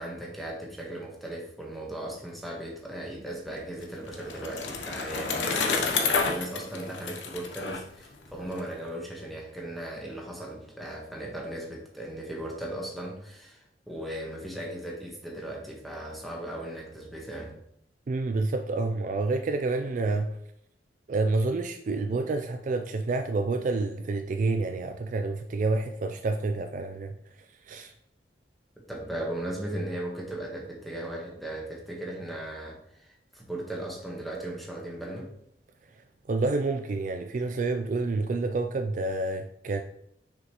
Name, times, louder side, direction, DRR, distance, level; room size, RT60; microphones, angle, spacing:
voice 1, 0.0-17.5 22.1-22.2 28.9-35.3, right 1 dB, ahead, 1.2 m, -37 dB
Bicycle, 3.5-8.6, left 5 dB, 85° left, 0.9 m, -30 dB
voice 2, 18.1-20.4 21.1-27.1 27.6-27.9 36.3-39.8, right 3 dB, 45° right, 0.3 m, -28 dB
6.3 x 5.0 x 3.0 m
head